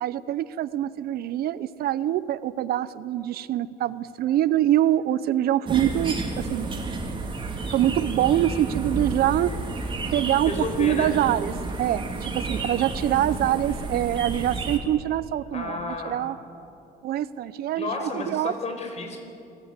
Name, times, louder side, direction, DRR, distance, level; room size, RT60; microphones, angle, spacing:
voice 1, 0.0-6.7 7.7-9.5 10.1-10.5 10.8-11.5 11.8-16.4 17.0-18.5, right 12 dB, 65° right, 17 dB, 0.7 m, -24 dB
sound 1, 5.6-14.8, right 3 dB, 30° right, 2.7 m, -31 dB
voice 2, 10.4-11.1 15.5-16.2 17.8-19.2, left 3 dB, 40° left, 4 dB, 4.8 m, -32 dB
25.0 x 16.0 x 8.2 m, 2.7 s
cardioid pair, 110°, 17 cm